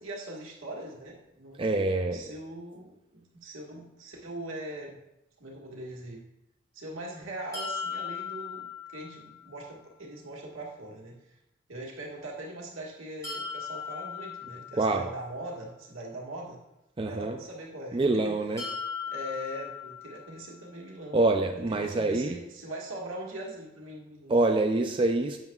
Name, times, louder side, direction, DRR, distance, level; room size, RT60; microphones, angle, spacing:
voice 1, 0.0-1.8 2.0-5.0 5.4-6.2 6.7-11.4 11.7-16.6 17.0-18.4 19.1-21.3 21.7-24.4, right 1 dB, 80° right, -2 dB, 1.7 m, -41 dB
voice 2, 1.6-2.2 14.7-15.1 17.0-17.4 17.9-18.6 21.1-22.4 24.3-25.4, right 2 dB, 25° right, 4 dB, 0.4 m, -26 dB
sound 1, 7.5-9.5 13.2-15.3 18.6-20.6, left 6 dB, 15° left, 2.2 m, -38 dB
10.5 x 7.5 x 2.3 m, 0.89 s
head